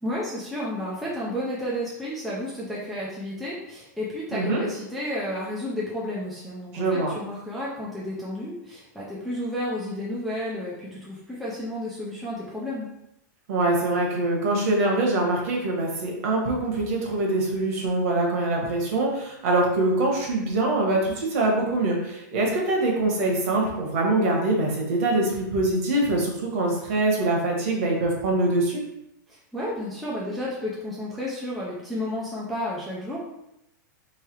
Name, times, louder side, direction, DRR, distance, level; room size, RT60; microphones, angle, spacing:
voice 1, 0.0-12.9 29.3-33.2, left 1 dB, ahead, -7 dB, 0.4 m, -32 dB
voice 2, 4.3-4.6 6.7-7.1 13.5-28.8, right 2 dB, 45° right, -1 dB, 1.2 m, -24 dB
3.3 x 3.3 x 4.5 m, 0.83 s
supercardioid pair, 175°, 10 cm